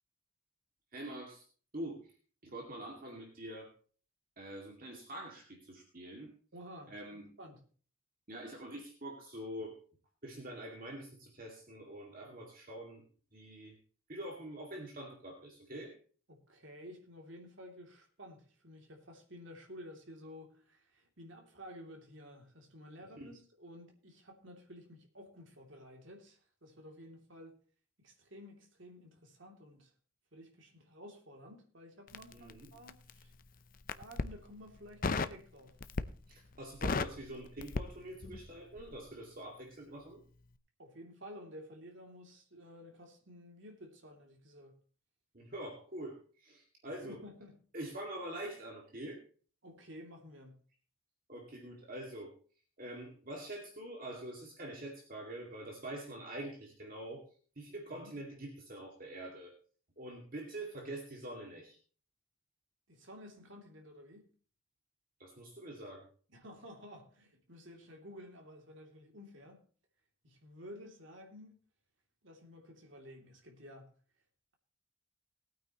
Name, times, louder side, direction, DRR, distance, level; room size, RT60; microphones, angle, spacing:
voice 1, 0.9-1.4 1.7-2.0 2.4-3.7 4.4-6.3 6.9-7.2 8.3-9.8 10.2-13.0 13.3-13.8 14.1-15.9 23.2-23.3 32.3-32.7 36.3-40.2 45.3-47.2 47.7-49.2 51.3-52.3 52.8-57.2 57.6-59.5 60.0-61.8 65.2-66.0, right 1 dB, 45° right, 2.3 m, -45 dB
voice 2, 6.5-7.6 16.3-27.6 28.0-29.9 30.3-33.3 33.9-35.8 40.8-44.8 46.8-47.6 49.6-50.6 57.9-58.1 62.9-64.3 66.3-69.6 70.2-71.6 72.2-73.9, equal, 60° right, 2.9 m, -53 dB
Crackle, 32.1-33.2 33.8-34.4 35.0-35.4 35.8-36.3 36.6-38.5 38.8-39.0, left 3 dB, 40° left, 0.6 m, -35 dB
19.5 x 9.0 x 3.0 m
head